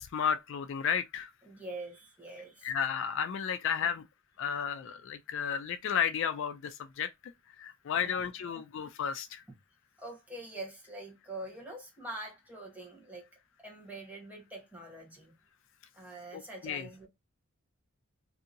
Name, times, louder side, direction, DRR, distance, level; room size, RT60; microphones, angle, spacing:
voice 1, 0.0-1.3 2.6-4.0 4.4-7.1 7.5-9.4 16.3-16.9, left 7 dB, 60° left, 0.3 m, -33 dB
voice 2, 1.4-2.7 3.8-3.9 8.0-8.1 8.5-8.6 10.0-13.3 13.6-15.4 15.9-17.1, right 2 dB, 5° right, 0.9 m, -44 dB
2.8 x 2.6 x 2.5 m
head